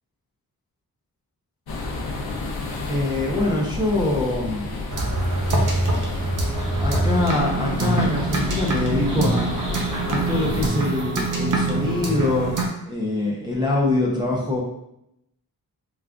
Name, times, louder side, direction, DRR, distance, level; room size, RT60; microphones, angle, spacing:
sound 1, 1.7-10.7, left 3 dB, 90° left, 0.6 m, -31 dB
voice 1, 2.9-4.9 6.8-12.5 12.8-14.6, left 2 dB, 10° right, -6 dB, 0.6 m, -24 dB
sound 2, 4.9-12.7, right 2 dB, 60° right, 0.7 m, -24 dB
3.6 x 2.3 x 2.3 m, 0.80 s
wide cardioid pair, 100°, 36 cm